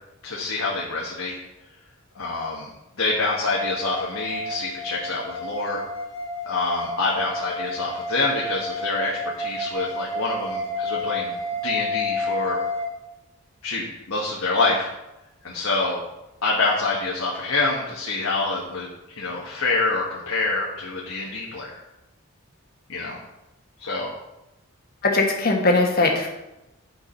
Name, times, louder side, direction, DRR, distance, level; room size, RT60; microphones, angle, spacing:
voice 1, 0.2-1.4 2.1-2.7 3.0-5.8 6.4-11.4 11.6-12.6 13.6-14.9 15.4-16.0 16.4-18.9 19.2-21.7 22.9-23.2 23.8-24.1, left 3 dB, 70° left, -3 dB, 1.3 m, -26 dB
sound 1, 3.5-12.9, left 1 dB, 25° right, 2.6 m, -30 dB
voice 2, 25.0-26.3, left 2 dB, 45° left, 1 dB, 1.3 m, -20 dB
9.3 x 4.8 x 5.5 m, 0.95 s
head